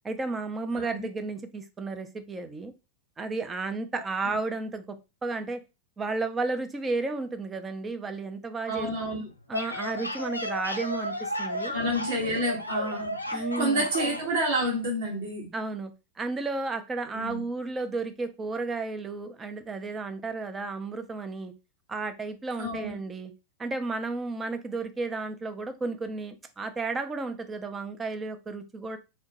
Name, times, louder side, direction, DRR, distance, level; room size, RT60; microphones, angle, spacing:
voice 1, 0.0-2.7 3.2-5.0 5.2-5.6 6.0-8.9 9.5-11.7 13.3-13.9 15.5-21.5 21.9-23.3 23.6-29.0, right 3 dB, 15° right, 0.4 m, -33 dB
voice 2, 0.7-1.1 4.2-4.4 8.7-9.2 11.7-15.5 17.1-17.4 22.6-23.0, right 1 dB, 60° right, 1.1 m, -29 dB
sound 1, 9.3-14.3, left 1 dB, 85° left, 0.4 m, -33 dB
2.9 x 2.1 x 2.9 m
figure-of-eight pair, 90°, 0 cm